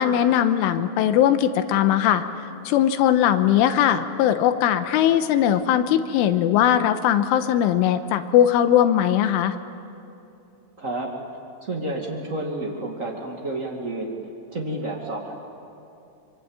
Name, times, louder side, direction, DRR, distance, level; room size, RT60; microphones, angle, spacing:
voice 1, 0.0-2.2 2.7-9.6, left 10 dB, 85° left, 9 dB, 3.4 m, -20 dB
voice 2, 10.8-11.1 11.6-14.1 14.5-15.3, right 2 dB, 60° right, -1 dB, 0.8 m, -30 dB
25.5 x 24.0 x 8.8 m, 2.7 s
omnidirectional pair, 5.7 m